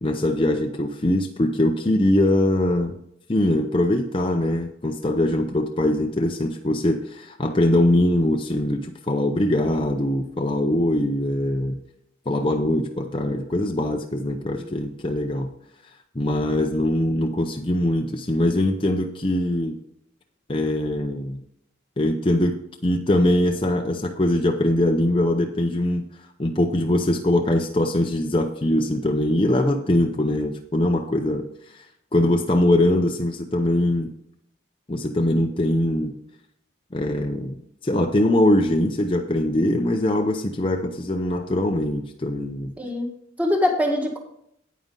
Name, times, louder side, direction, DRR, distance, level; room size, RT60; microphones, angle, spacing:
voice 1, 0.0-2.9 3.3-11.8 12.3-15.5 16.1-19.8 20.5-21.4 22.0-26.0 26.4-31.5 31.7-31.8 32.1-34.1 34.9-36.1 36.9-37.5 37.8-42.7, left 1 dB, 25° left, 3 dB, 0.6 m, -22 dB
voice 2, 42.8-43.1 43.4-44.2, left 1 dB, 5° right, 1 dB, 1.6 m, -23 dB
9.4 x 9.0 x 3.8 m, 0.74 s
head